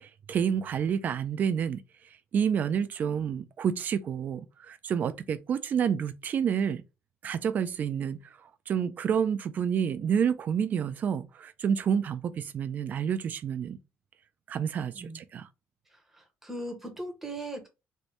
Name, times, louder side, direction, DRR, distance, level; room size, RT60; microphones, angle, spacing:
voice 1, 0.0-1.8 2.3-6.8 7.2-8.2 8.7-13.8 14.5-15.5, right 7 dB, 35° right, 0.3 m, -29 dB
voice 2, 16.1-17.7, right 1 dB, 5° right, 0.8 m, -38 dB
3.2 x 2.6 x 2.9 m
cardioid pair, 170°, 5 cm